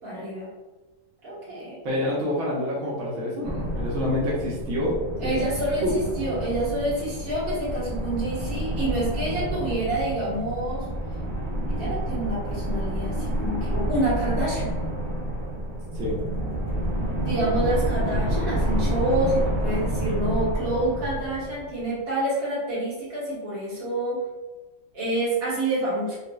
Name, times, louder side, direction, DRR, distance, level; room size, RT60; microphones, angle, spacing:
voice 1, 0.0-0.5 1.2-1.8 5.2-10.9 11.7-14.7 17.2-24.2 24.9-26.2, right 1 dB, 45° right, -8 dB, 1.7 m, -28 dB
voice 2, 1.8-4.9 5.2-5.3 5.8-5.9 15.9-16.2, left 1 dB, 60° right, -6 dB, 0.8 m, -27 dB
sound 1, 3.4-21.9, right 1 dB, 25° left, 1.1 m, -29 dB
4.1 x 2.4 x 2.3 m, 1.2 s
omnidirectional pair, 2.3 m